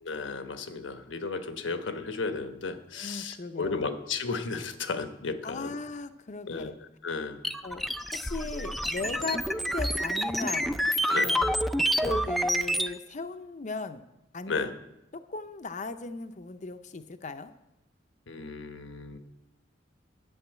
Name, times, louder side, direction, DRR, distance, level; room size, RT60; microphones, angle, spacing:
voice 1, 0.0-5.7 6.5-7.4 11.1-11.3 14.5-14.7 18.3-19.2, left 4 dB, 80° left, 8 dB, 1.1 m, -34 dB
voice 2, 2.9-4.0 5.4-6.8 7.6-7.8 8.1-10.7 11.2-14.0 14.3-14.7 15.1-17.5, left 3 dB, 40° left, 10 dB, 0.6 m, -37 dB
sound 1, 7.4-12.9, equal, ahead, 0.4 m, -28 dB
11.5 x 7.1 x 9.0 m, 0.91 s
head